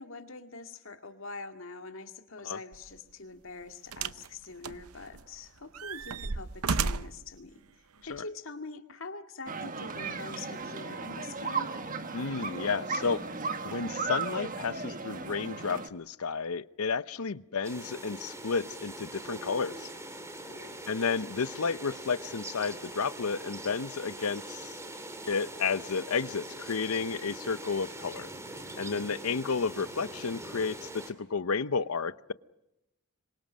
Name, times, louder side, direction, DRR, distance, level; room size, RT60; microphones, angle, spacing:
voice 1, 0.0-7.6 8.0-11.7 20.4-20.8 28.8-29.0, left 3 dB, 65° left, 6 dB, 2.1 m, -44 dB
sound 1, 2.7-2.9 3.9-4.3 4.6-5.3 5.7-7.2 8.1-8.2, right 5 dB, 90° right, 0.8 m, -33 dB
sound 2, 9.5-15.9, right 4 dB, 40° right, 1.4 m, -36 dB
voice 2, 12.1-13.2 13.6-19.9 20.9-24.8 25.3-28.3 28.8-32.3, left 5 dB, 90° left, 16 dB, 0.8 m, -32 dB
sound 3, 17.6-31.1, right 1 dB, 15° right, 2.4 m, -43 dB
26.5 x 23.5 x 6.3 m, 0.89 s
head